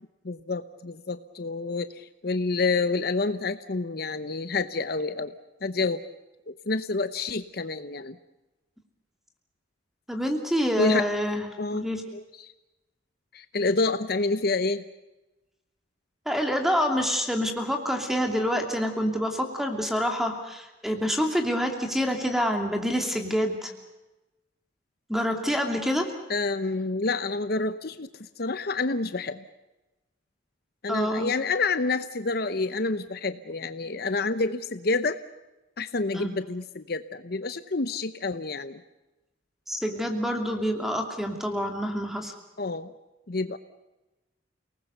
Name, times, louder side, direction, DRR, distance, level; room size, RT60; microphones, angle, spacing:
voice 1, 0.2-5.3 5.6-6.0 6.5-8.2 10.8-11.1 11.6-11.9 12.1-12.5 13.3-14.8 26.3-28.1 28.4-29.4 30.8-35.2 35.8-38.8 42.6-42.9 43.3-43.6, left 3 dB, 55° left, 11 dB, 0.8 m, -28 dB
voice 2, 10.1-12.0 16.3-23.7 25.1-26.1 30.9-31.3 36.1-36.3 39.7-42.3, equal, ahead, 4 dB, 2.7 m, -27 dB
29.5 x 19.0 x 6.8 m, 1.0 s
head